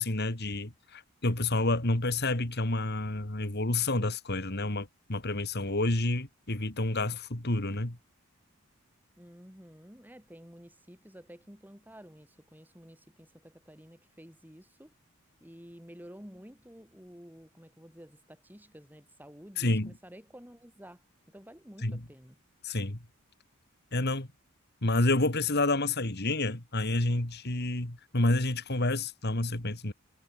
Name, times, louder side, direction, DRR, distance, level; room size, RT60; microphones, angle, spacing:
voice 1, 0.0-8.0 19.6-19.9 21.8-22.0 22.6-23.0 23.9-24.3 24.8-29.9, left 2 dB, 50° left, 2.5 m, -29 dB
voice 2, 9.2-14.9 15.4-22.4, equal, 10° right, 6.5 m, -51 dB
head